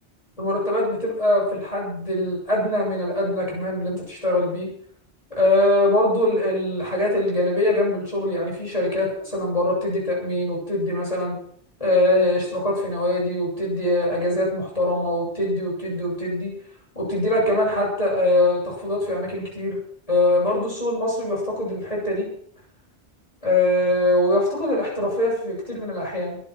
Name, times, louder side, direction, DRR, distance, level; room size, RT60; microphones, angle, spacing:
voice 1, 0.4-4.7 5.3-11.4 11.8-16.5 16.9-19.8 20.1-22.2 23.4-26.4, left 1 dB, 30° left, -5 dB, 8.0 m, -23 dB
23.5 x 8.8 x 6.3 m, 0.63 s
omnidirectional pair, 1.1 m